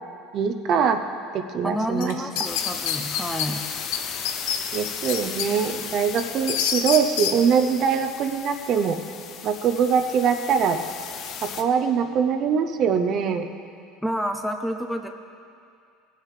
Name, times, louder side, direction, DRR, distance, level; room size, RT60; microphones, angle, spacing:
voice 1, 0.3-1.1 1.3-2.1 4.7-9.0 9.4-10.8 11.4-13.5, right 7 dB, 45° right, 7 dB, 0.7 m, -23 dB
voice 2, 1.6-3.6 14.0-15.1, equal, ahead, 5 dB, 0.6 m, -29 dB
sound 1, 2.0-3.5 3.9-4.0 4.3-5.5 5.9-7.3, left 9 dB, 75° left, 0.8 m, -26 dB
sound 2, 2.4-11.6, left 8 dB, 45° left, 0.7 m, -36 dB
17.5 x 6.5 x 5.0 m, 2.4 s
supercardioid pair, 130°, 0 cm